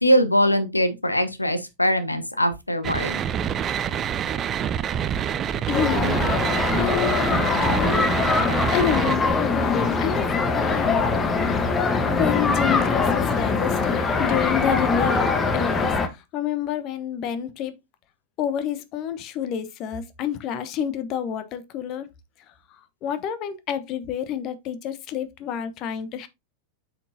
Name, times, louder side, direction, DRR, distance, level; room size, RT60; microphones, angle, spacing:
voice 1, 0.0-3.2, equal, 85° left, 1.0 m, -21 dB
sound 1, 2.8-9.2, right 9 dB, 30° right, 0.6 m, -26 dB
voice 2, 5.7-8.1 8.7-11.0 12.1-15.2 15.5-17.7 18.4-22.1 23.0-26.3, left 9 dB, 40° left, 1.1 m, -28 dB
sound 2, 5.7-16.1, left 4 dB, 20° left, 1.2 m, -22 dB
8.0 x 6.0 x 2.8 m
figure-of-eight pair, 90°, 0 cm